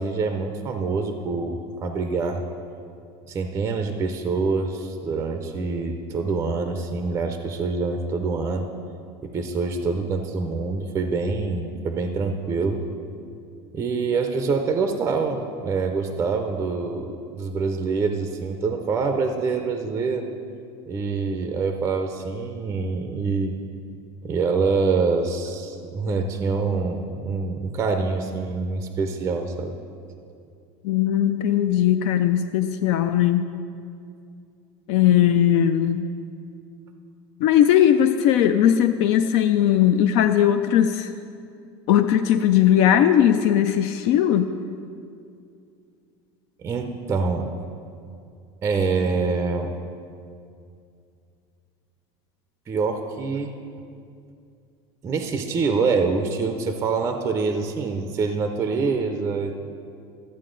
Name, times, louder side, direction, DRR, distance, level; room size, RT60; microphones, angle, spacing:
voice 1, 0.0-2.4 3.3-8.7 9.2-12.8 13.7-20.2 20.9-23.5 24.2-29.8 46.6-47.5 48.6-49.7 52.7-53.5 55.0-59.6, right 4 dB, 20° right, 6 dB, 0.5 m, -25 dB
voice 2, 30.8-33.5 34.9-36.1 37.4-41.1 41.9-44.5, left 10 dB, 55° left, 8 dB, 0.4 m, -19 dB
12.5 x 8.3 x 3.8 m, 2.4 s
cardioid pair, 160°, 14 cm